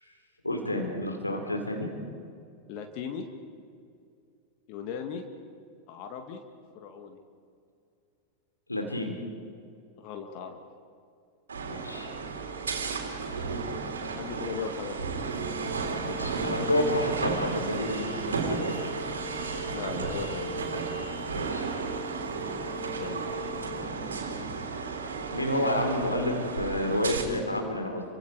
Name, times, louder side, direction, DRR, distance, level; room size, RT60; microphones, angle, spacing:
voice 1, 0.4-1.9 8.7-9.2 11.7-12.1 16.0-18.7 21.3-21.7 25.3-28.0, left 1 dB, 85° left, 1 dB, 3.8 m, -29 dB
voice 2, 2.7-3.3 4.7-5.2 5.9-6.4 6.7-7.2 10.0-10.6 13.9-15.0 19.6-20.5 23.0-23.5, left 6 dB, 45° left, 5 dB, 2.1 m, -38 dB
sound 1, 11.5-27.2, right 4 dB, 70° right, 3.6 m, -33 dB
29.0 x 25.5 x 4.8 m, 2.4 s
figure-of-eight pair, 90°, 0 cm